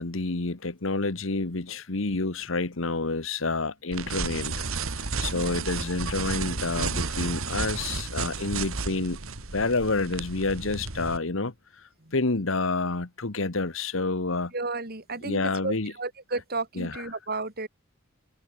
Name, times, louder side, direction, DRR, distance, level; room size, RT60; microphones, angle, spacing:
voice 1, 0.0-4.7 4.9-9.2 9.5-11.5 12.1-14.5 15.2-15.9 16.7-17.0, left 3 dB, 70° left, 1.4 m, -28 dB
sound 1, 3.9-11.2, right 4 dB, 90° right, 2.4 m, -32 dB
voice 2, 5.3-5.7 12.0-12.1 14.5-17.7, right 3 dB, 50° right, 4.7 m, -33 dB
head